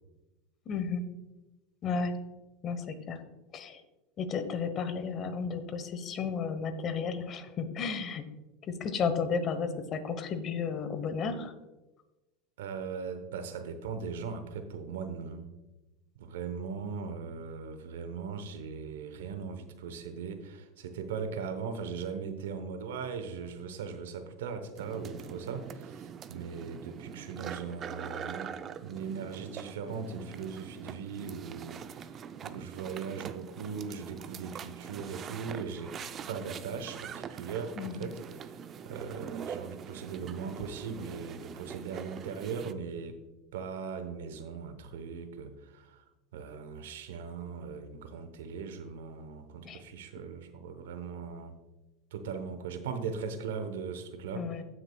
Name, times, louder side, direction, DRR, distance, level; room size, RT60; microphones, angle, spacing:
voice 1, 0.7-1.1 1.8-2.2 2.6-3.2 3.5-3.8 4.2-8.2 8.6-11.5 37.8-38.1 49.6-49.8 54.3-54.6, left 5 dB, 40° left, 10 dB, 1.0 m, -33 dB
voice 2, 12.6-15.5 16.2-28.6 28.8-35.9 36.3-38.5 38.8-43.2 43.5-46.0 46.3-51.5 52.1-54.5, right 6 dB, 85° right, 9 dB, 0.9 m, -39 dB
sound 1, 24.8-42.7, right 7 dB, 40° right, 0.4 m, -43 dB
15.5 x 6.3 x 2.3 m, 1.1 s
supercardioid pair, 105°, 0 cm